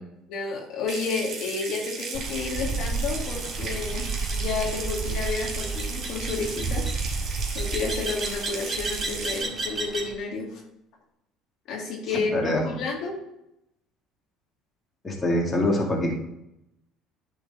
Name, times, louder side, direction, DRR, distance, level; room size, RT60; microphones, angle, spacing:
voice 1, 0.3-6.8 7.5-10.6 11.7-13.1, left 4 dB, 65° left, -1 dB, 2.0 m, -31 dB
Water tap faucet / Sink (filling or washing) / Trickle dribble, 0.9-9.4, right 4 dB, 45° right, 2.3 m, -36 dB
sound 1, 2.1-10.2, right 3 dB, 15° right, 2.0 m, -31 dB
voice 2, 12.1-12.6 15.0-16.2, left 1 dB, 25° left, -1 dB, 2.0 m, -25 dB
10.5 x 3.8 x 3.8 m, 0.84 s
supercardioid pair, 80°, 0 cm